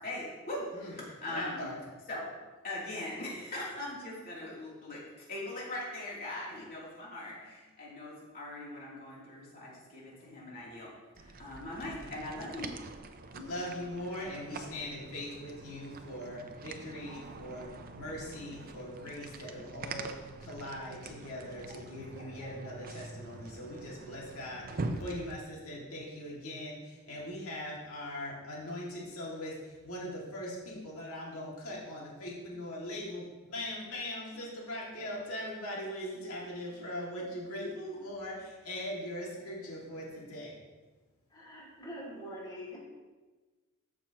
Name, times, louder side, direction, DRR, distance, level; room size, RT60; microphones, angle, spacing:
voice 1, 0.0-1.7 2.1-2.3 2.6-10.9 11.2-12.8, left 1 dB, 45° left, -6 dB, 3.0 m, -41 dB
voice 2, 1.2-1.8 4.3-4.4 11.8-12.1 13.3-29.6 29.8-40.5, left 1 dB, 85° left, -4 dB, 2.2 m, -41 dB
sound 1, 11.1-25.4, right 3 dB, 45° right, 0.6 m, -44 dB
voice 3, 41.3-42.8, equal, 20° left, -6 dB, 2.6 m, -44 dB
14.0 x 6.1 x 3.0 m, 1.3 s
head